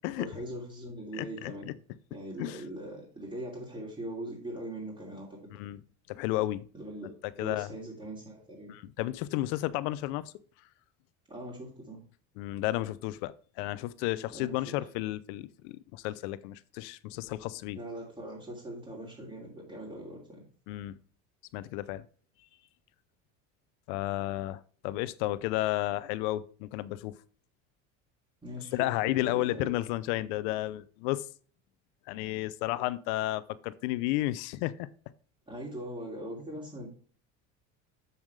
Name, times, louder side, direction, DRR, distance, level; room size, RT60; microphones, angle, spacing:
voice 1, 0.2-1.7 2.1-5.4 6.7-8.7 11.3-12.0 14.3-14.7 17.7-20.5 28.4-29.7 35.5-36.9, right 1 dB, 15° right, 3.0 m, -41 dB
voice 2, 1.2-1.7 2.4-2.6 5.5-5.8 6.1-6.6 7.4-7.7 8.7-10.3 12.4-17.8 20.7-21.0 21.5-22.0 23.9-27.2 28.7-31.3 32.1-34.9, left 16 dB, 80° left, 0.7 m, -32 dB
7.2 x 7.2 x 3.3 m
supercardioid pair, 110°, 34 cm